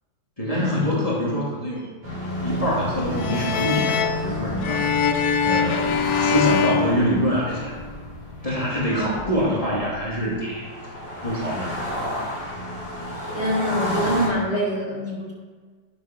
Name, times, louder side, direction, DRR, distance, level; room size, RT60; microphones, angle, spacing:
voice 1, 0.4-1.9 2.4-4.8 5.4-7.7 8.4-10.7 11.2-11.8, equal, 20° left, -5 dB, 2.6 m, -25 dB
sound 1, 2.0-14.3, left 1 dB, 75° right, 5.2 m, -31 dB
sound 2, 3.2-7.8, left 6 dB, 70° left, 1.1 m, -24 dB
voice 2, 13.3-15.3, equal, 40° right, -3 dB, 3.5 m, -25 dB
11.5 x 8.0 x 6.1 m, 1.4 s
omnidirectional pair, 1.8 m